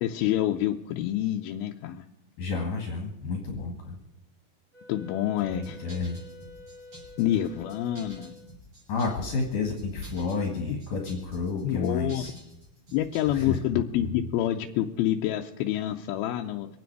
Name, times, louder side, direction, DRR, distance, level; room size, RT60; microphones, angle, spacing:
voice 1, 0.0-2.1 4.9-5.9 7.2-8.3 11.6-12.2 12.9-16.7, left 12 dB, 85° left, 2 dB, 2.5 m, -27 dB
voice 2, 2.4-4.0 5.5-6.2 8.9-12.3 13.3-14.1, left 4 dB, 60° left, 1 dB, 2.9 m, -31 dB
Wind instrument woodwind instrument, 4.7-8.5, left 2 dB, 25° left, 4.3 m, -49 dB
sound 1, 5.4-13.6, equal, 45° right, 8.1 m, -50 dB
25.5 x 9.5 x 4.7 m, 0.95 s
omnidirectional pair, 4.2 m